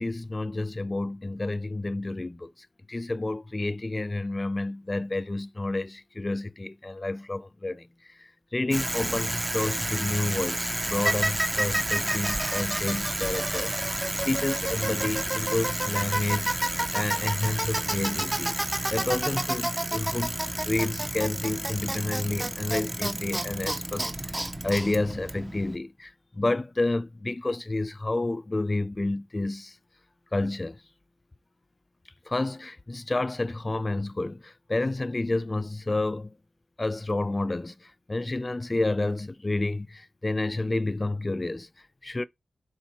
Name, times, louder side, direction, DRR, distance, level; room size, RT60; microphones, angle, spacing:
voice 1, 0.0-2.5 2.9-7.9 8.2-18.6 18.9-24.3 24.6-29.7 30.3-30.8 32.3-36.3 36.8-41.7 42.0-42.2, left 2 dB, 25° left, 0.6 m, -30 dB
Bicycle, 8.7-25.8, right 1 dB, 20° right, 1.0 m, -29 dB
7.1 x 4.2 x 4.4 m
wide cardioid pair, 80°, 0 cm